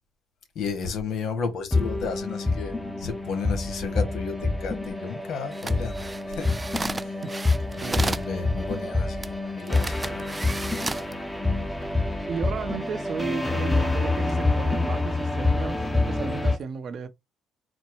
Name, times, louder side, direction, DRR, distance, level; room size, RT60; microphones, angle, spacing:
voice 1, 0.5-6.6 7.0-7.1 7.8-10.3 16.3-16.5, left 5 dB, 70° left, 1.4 m, -33 dB
sound 1, 1.7-16.6, left 2 dB, 10° left, 1.1 m, -27 dB
sound 2, 5.5-8.3 9.2-9.3 9.7-11.1 11.7-11.9, right 3 dB, 20° right, 0.3 m, -33 dB
voice 2, 12.0-17.1, right 6 dB, 55° right, 0.8 m, -34 dB
4.3 x 2.2 x 4.6 m
supercardioid pair, 70°, 0 cm